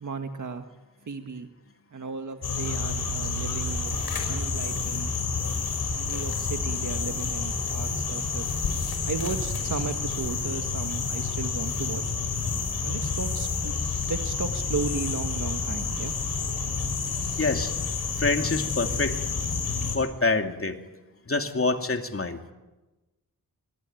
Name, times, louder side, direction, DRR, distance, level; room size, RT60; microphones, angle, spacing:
voice 1, 0.0-0.7 1.1-1.5 1.9-4.0 4.3-5.1 5.9-8.5 9.0-12.0 12.8-13.7 14.1-16.1, right 4 dB, 60° right, 6 dB, 1.6 m, -35 dB
sound 1, 2.4-20.0, left 4 dB, 90° left, 5.4 m, -29 dB
voice 2, 17.4-17.7 18.2-19.2 19.9-20.8 21.3-22.4, left 3 dB, 40° left, 5 dB, 2.8 m, -26 dB
25.0 x 23.0 x 9.2 m, 1.1 s
wide cardioid pair, 70°, 35 cm